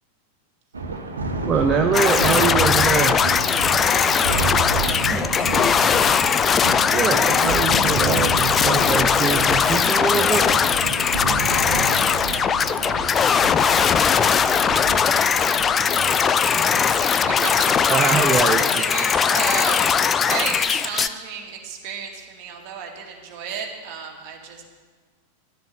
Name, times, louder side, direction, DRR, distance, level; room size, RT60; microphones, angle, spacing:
Thunder, 0.7-18.4, right 3 dB, 70° right, 1.3 m, -30 dB
voice 1, 1.5-3.2 6.9-10.5 17.9-18.6, right 6 dB, 25° right, 5 dB, 0.7 m, -23 dB
sound 1, 1.9-21.1, left 7 dB, 20° left, 0.5 m, -19 dB
voice 2, 3.7-6.3 11.3-15.7 16.1-24.6, right 6 dB, 45° right, 1 dB, 2.4 m, -35 dB
12.0 x 7.8 x 8.6 m, 1.5 s
figure-of-eight pair, 90°, 0 cm